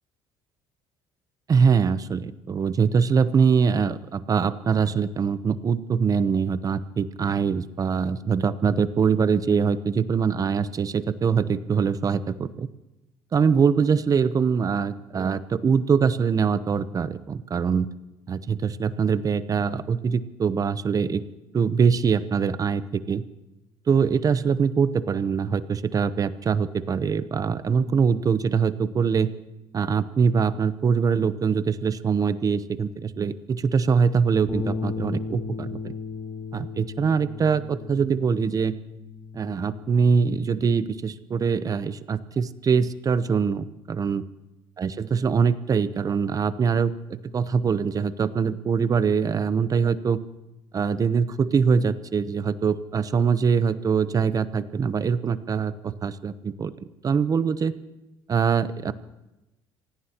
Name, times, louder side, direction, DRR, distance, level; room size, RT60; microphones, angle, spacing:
voice 1, 1.5-12.7 13.3-17.9 18.3-21.2 21.5-23.2 23.9-29.3 29.7-35.9 36.5-38.7 39.3-44.2 44.8-46.9 47.3-50.2 50.7-57.7 58.3-58.9, right 6 dB, 35° right, 14 dB, 0.8 m, -23 dB
sound 1, 34.5-40.7, left 5 dB, 20° left, 3.0 m, -35 dB
26.0 x 17.5 x 3.0 m, 1.0 s
supercardioid pair, 85°, 10 cm